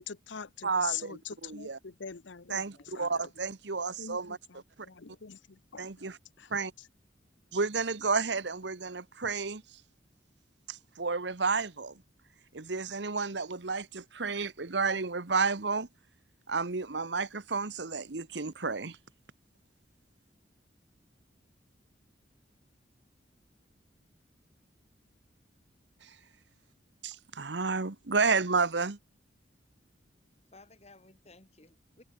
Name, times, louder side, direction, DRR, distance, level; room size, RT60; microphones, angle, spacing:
voice 1, 0.0-3.1 4.0-5.9 6.4-6.5 6.8-6.9, left 8 dB, 90° left, 0.9 m, -43 dB
voice 2, 0.6-1.8 2.5-4.4 5.8-6.2 6.5-6.7 7.5-9.6 10.7-11.9 12.5-15.9 16.5-19.0 26.0-26.1 27.0-29.0, right 4 dB, 75° right, 1.2 m, -31 dB
voice 3, 2.7-3.1 30.5-32.0, left 2 dB, 35° left, 4.6 m, -57 dB
head